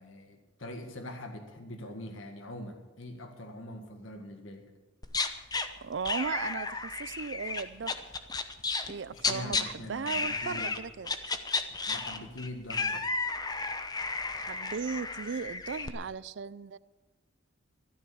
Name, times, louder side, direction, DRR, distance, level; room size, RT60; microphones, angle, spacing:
voice 1, 0.0-4.7 9.1-10.7 11.9-13.0, left 1 dB, 85° left, 1.7 m, -43 dB
sound 1, 5.0-5.7 6.1-8.9 9.2-9.6 10.1-10.8 11.1-15.9, left 4 dB, 20° left, 0.8 m, -33 dB
voice 2, 5.8-8.0 8.9-11.1 14.3-16.8, right 5 dB, 65° right, 0.5 m, -37 dB
13.5 x 12.0 x 7.0 m
head